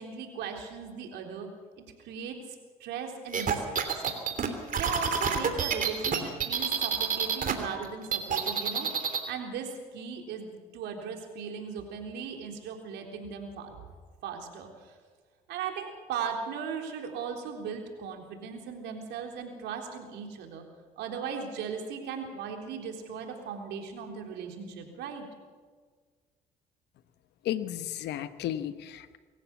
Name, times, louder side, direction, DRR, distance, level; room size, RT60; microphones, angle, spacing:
voice 1, 0.0-1.5 2.0-2.4 2.8-4.0 4.8-8.9 9.3-10.5 10.7-13.8 14.2-14.9 15.5-20.6 21.0-25.3, right 6 dB, 75° right, 3 dB, 3.7 m, -38 dB
sound 1, 3.3-7.5 7.8-9.3, right 6 dB, 50° right, 3.1 m, -28 dB
voice 2, 27.4-29.2, left 11 dB, 70° left, 12 dB, 1.1 m, -33 dB
24.5 x 14.5 x 7.2 m, 1.5 s
supercardioid pair, 65°, 18 cm